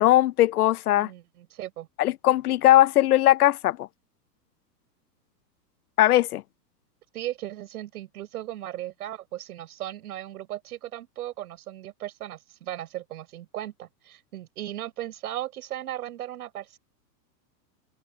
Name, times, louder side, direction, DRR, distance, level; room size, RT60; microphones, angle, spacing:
voice 1, 0.0-1.1 2.0-3.9 6.0-6.4, left 14 dB, 60° left, 0.8 m, -19 dB
voice 2, 0.9-1.9 7.1-16.8, right 13 dB, 60° right, 6.5 m, -37 dB
supercardioid pair, 165°, 50 cm